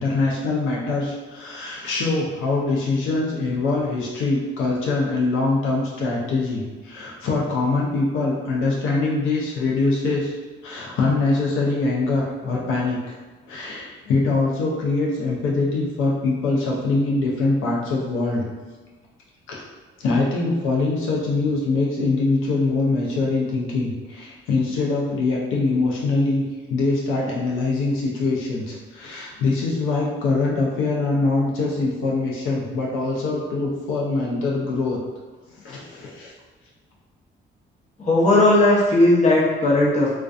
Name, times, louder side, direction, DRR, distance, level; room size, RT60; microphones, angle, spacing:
voice 1, 0.0-10.4 10.6-13.0 13.5-18.4 19.5-19.6 20.0-26.4 26.7-35.0 35.5-36.3, left 3 dB, 85° left, -3 dB, 0.5 m, -23 dB
voice 2, 38.0-40.1, left 2 dB, 35° left, -5 dB, 0.7 m, -17 dB
2.5 x 2.2 x 2.4 m, 1.3 s
cardioid pair, 90°, 20 cm